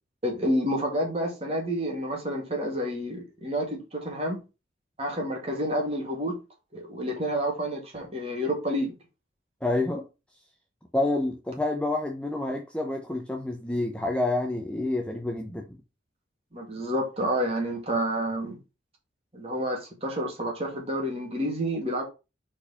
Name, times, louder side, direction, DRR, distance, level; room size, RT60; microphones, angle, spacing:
voice 1, 0.2-4.4 5.0-6.3 6.7-8.9 16.5-18.6 19.3-22.0, equal, 30° right, 2.2 m, -29 dB
voice 2, 9.6-10.0 10.9-15.8, left 2 dB, 5° left, 0.7 m, -28 dB
4.8 x 4.4 x 5.6 m
head